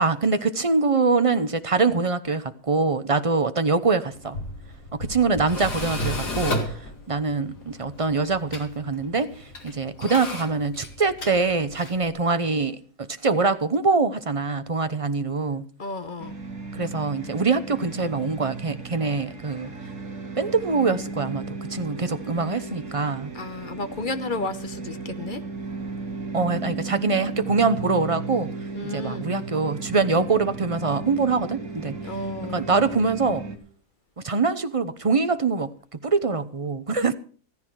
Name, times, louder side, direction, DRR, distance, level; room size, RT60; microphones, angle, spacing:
voice 1, 0.0-4.4 4.9-6.6 7.1-9.3 9.6-15.6 16.7-19.7 20.4-23.3 26.3-28.5 28.8-32.0 32.4-33.4 34.2-35.7 36.0-37.1, right 4 dB, 35° right, 0.6 m, -24 dB
Tools, 4.1-12.1, left 1 dB, 80° left, 3.4 m, -33 dB
voice 2, 15.8-16.3 23.3-25.4 28.7-29.3 32.0-32.6, left 2 dB, 35° left, 1.0 m, -32 dB
sound 1, 16.2-33.6, right 3 dB, 75° right, 3.1 m, -35 dB
15.0 x 14.0 x 4.7 m
omnidirectional pair, 1.7 m